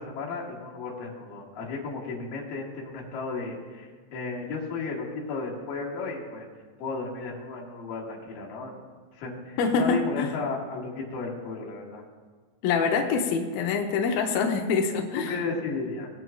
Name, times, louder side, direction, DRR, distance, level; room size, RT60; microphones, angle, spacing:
voice 1, 0.0-6.5 6.8-8.8 9.2-12.0 15.2-16.1, left 4 dB, 60° left, -4 dB, 3.0 m, -34 dB
voice 2, 9.6-10.3 12.6-15.4, left 5 dB, 90° left, 3 dB, 2.1 m, -25 dB
19.5 x 9.0 x 2.3 m, 1.5 s
omnidirectional pair, 5.1 m